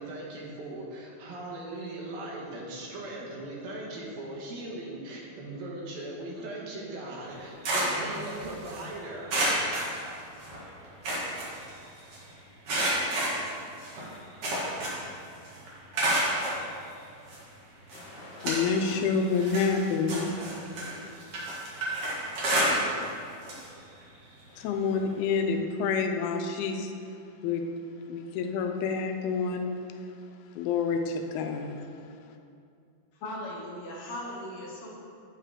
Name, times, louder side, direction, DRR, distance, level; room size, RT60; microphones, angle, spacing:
voice 1, 0.0-9.4, right 2 dB, 75° right, -4 dB, 3.2 m, -39 dB
sound 1, 7.3-8.8 9.3-10.6 10.8-12.2 12.7-15.2 15.4-16.6 17.3-17.4 17.9-19.0 19.3-23.1 23.4-23.6 24.0-24.1 25.3-25.4, right 1 dB, 45° right, 2.3 m, -30 dB
voice 2, 17.9-20.5 24.6-26.9 27.4-27.6 28.1-29.7 30.6-31.8, left 5 dB, 90° left, 5 dB, 2.6 m, -28 dB
voice 3, 33.2-34.9, left 1 dB, 65° left, -4 dB, 2.7 m, -38 dB
9.0 x 7.4 x 3.7 m, 2.4 s
omnidirectional pair, 4.3 m